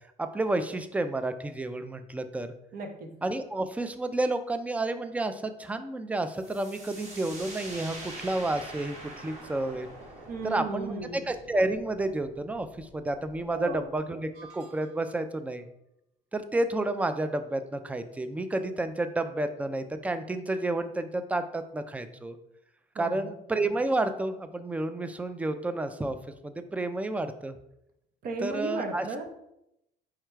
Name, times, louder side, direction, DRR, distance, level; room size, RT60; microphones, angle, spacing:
voice 1, 0.2-2.5 3.2-9.9 10.4-15.7 16.3-22.4 23.0-26.2 26.4-27.5 28.4-29.1, right 2 dB, 10° right, 9 dB, 0.3 m, -30 dB
voice 2, 2.7-3.1 10.3-11.2 13.5-13.8 23.0-23.3 28.2-29.3, right 3 dB, 60° right, 4 dB, 0.8 m, -35 dB
sound 1, 6.3-13.9, right 2 dB, 40° right, 1.1 m, -45 dB
sound 2, 14.3-15.3, right 3 dB, 75° right, 1.1 m, -53 dB
4.8 x 2.2 x 4.5 m, 0.82 s
cardioid pair, 110°, 17 cm